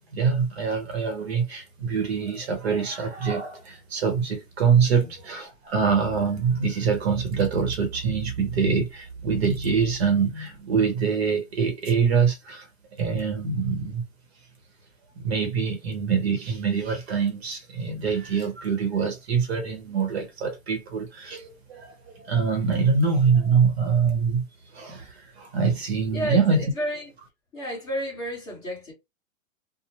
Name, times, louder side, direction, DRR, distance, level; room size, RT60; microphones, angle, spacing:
voice 1, 0.1-12.7 13.0-14.0 15.2-24.5 24.7-26.6, right 5 dB, 50° right, 0.9 m, -24 dB
voice 2, 26.1-27.1 27.5-28.9, equal, 15° left, 1.0 m, -31 dB
2.9 x 2.0 x 2.9 m
hypercardioid pair, 175°, 40 cm